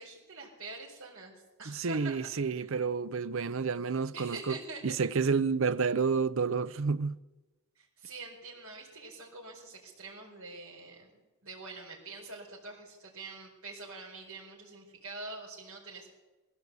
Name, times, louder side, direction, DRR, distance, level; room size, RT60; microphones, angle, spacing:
voice 1, 0.0-2.8 4.1-5.0 7.8-11.1 11.4-16.1, right 3 dB, 85° right, 4.5 m, -45 dB
voice 2, 1.7-4.5 4.8-7.2, right 5 dB, 65° right, 0.6 m, -30 dB
20.5 x 15.5 x 8.2 m
head